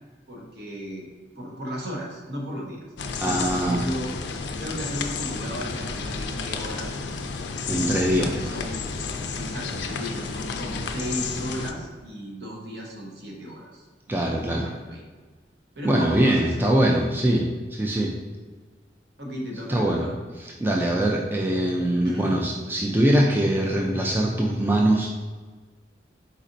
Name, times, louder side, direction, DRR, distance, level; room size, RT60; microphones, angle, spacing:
voice 1, 0.3-1.1 1.4-2.8 3.2-4.1 4.6-7.0 8.1-9.0 9.3-15.0 15.7-16.7 19.2-20.1 22.0-22.3, equal, 65° right, -2 dB, 1.0 m, -35 dB
sound 1, 3.0-11.7, left 4 dB, 75° left, 0.4 m, -31 dB
voice 2, 3.2-3.8 7.7-8.3 14.1-14.7 15.8-18.1 19.7-20.1 20.6-25.1, right 1 dB, 10° right, -2 dB, 0.3 m, -22 dB
4.2 x 4.1 x 2.6 m, 1.4 s
head